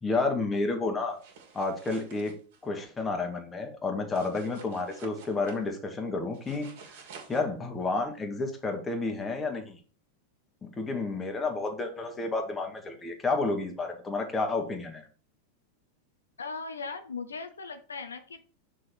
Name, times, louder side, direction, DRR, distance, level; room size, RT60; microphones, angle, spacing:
voice 1, 0.0-1.2 1.5-2.3 2.6-7.0 7.3-9.8 10.6-15.1, left 3 dB, 15° left, 3 dB, 1.7 m, -31 dB
sound 1, 1.1-2.6 4.1-5.6 6.3-7.4, right 5 dB, 60° right, 2.1 m, -50 dB
voice 2, 16.4-18.4, left 4 dB, 80° left, 8 dB, 0.7 m, -38 dB
6.4 x 3.9 x 6.0 m, 0.39 s
figure-of-eight pair, 95°, 0 cm